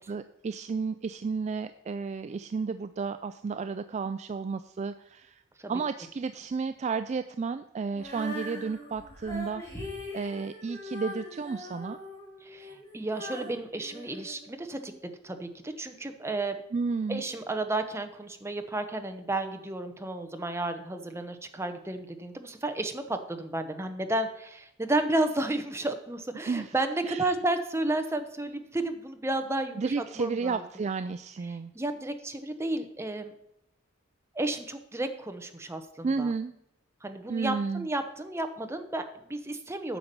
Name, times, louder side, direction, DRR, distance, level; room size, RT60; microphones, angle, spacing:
voice 1, 0.0-5.4 5.7-12.0 16.7-17.2 26.5-26.7 27.0-27.3 29.8-31.7 36.0-36.5 37.3-37.9, right 4 dB, 35° right, 10 dB, 0.3 m, -32 dB
Female singing, 7.9-15.0, left 1 dB, 15° left, 2.9 m, -42 dB
voice 2, 12.4-16.6 17.1-30.6 31.5-33.3 34.3-36.3 37.0-40.0, right 2 dB, 15° right, 6 dB, 0.8 m, -32 dB
9.2 x 5.9 x 6.7 m, 0.79 s
head